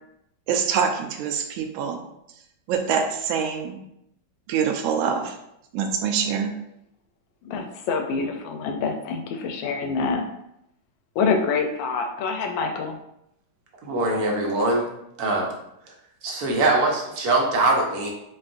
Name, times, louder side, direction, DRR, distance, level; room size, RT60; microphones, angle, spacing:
voice 1, 0.5-2.0 2.7-3.8 4.5-5.4 5.7-6.6, right 7 dB, 85° right, 5 dB, 1.4 m, -25 dB
voice 2, 7.4-10.2 11.2-13.0, left 5 dB, 75° left, 5 dB, 1.2 m, -26 dB
voice 3, 13.8-14.9 15.2-15.5 16.2-18.1, right 2 dB, 60° right, 0 dB, 1.2 m, -22 dB
4.3 x 3.9 x 2.5 m, 0.80 s
omnidirectional pair, 2.2 m